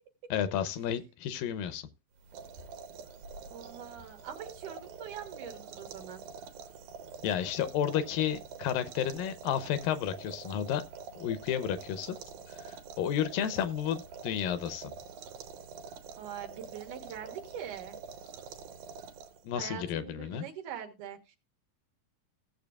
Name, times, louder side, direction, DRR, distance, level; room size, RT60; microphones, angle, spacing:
voice 1, 0.3-1.9 7.2-10.8 11.2-12.2 12.5-14.9 19.4-20.5, left 9 dB, 80° left, 2.5 m, -32 dB
sound 1, 2.2-19.6, right 5 dB, 90° right, 2.8 m, -46 dB
voice 2, 3.5-6.2 16.2-18.0 19.5-21.4, right 9 dB, 70° right, 2.7 m, -43 dB
17.0 x 7.4 x 2.4 m
omnidirectional pair, 3.9 m